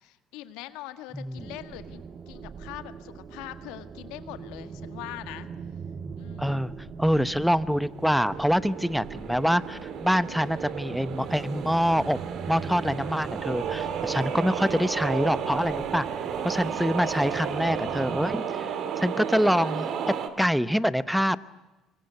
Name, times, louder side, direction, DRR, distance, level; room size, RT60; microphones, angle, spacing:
voice 1, 0.0-5.5 6.2-6.6 13.7-14.2 16.6-16.9, left 15 dB, 85° left, 10 dB, 1.7 m, -43 dB
voice 2, 1.1-1.5 6.4-6.7 7.0-12.2 12.5-16.1 16.4-21.4, equal, ahead, 16 dB, 0.9 m, -25 dB
sound 1, 1.4-18.4, right 6 dB, 40° right, 1.6 m, -41 dB
sound 2, 7.8-20.3, right 7 dB, 60° right, 2.5 m, -33 dB
25.5 x 23.0 x 8.0 m, 1.1 s
cardioid pair, 105°, 0 cm